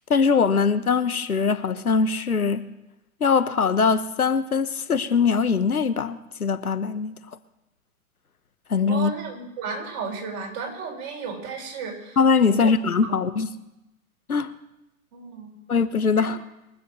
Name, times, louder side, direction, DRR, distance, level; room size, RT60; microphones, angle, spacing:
voice 1, 0.1-2.6 3.2-7.2 8.7-9.1 12.2-13.5 14.3-14.5 15.7-16.4, left 5 dB, 80° left, 1.1 m, -22 dB
voice 2, 8.9-12.2 12.5-12.7 13.0-13.2 15.1-15.5 16.2-16.3, right 5 dB, 35° right, 4.9 m, -33 dB
22.5 x 7.8 x 6.6 m
figure-of-eight pair, 105°, 43 cm